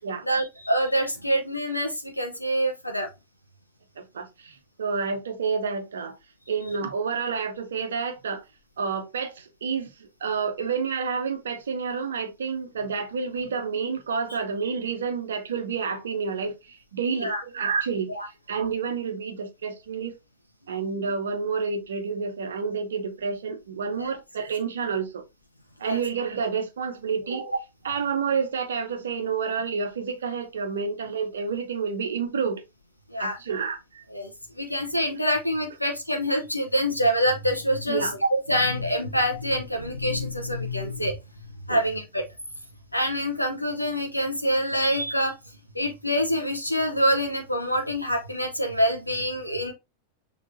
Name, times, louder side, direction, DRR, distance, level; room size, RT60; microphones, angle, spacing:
voice 1, 0.2-3.1 17.2-17.4 18.2-18.3 24.0-24.1 25.8-26.0 33.1-33.4 34.1-34.3 34.6-41.2 41.7-42.2 42.9-45.4 45.7-49.7, equal, 85° left, 0.8 m, -26 dB
voice 2, 4.0-6.2 6.5-8.5 8.8-18.2 18.5-20.1 20.7-25.2 25.8-27.6 27.8-32.6 33.2-34.0 37.9-38.1 41.7-41.8, right 5 dB, 65° right, 0.9 m, -29 dB
6.2 x 3.2 x 2.6 m
figure-of-eight pair, 90°, 0 cm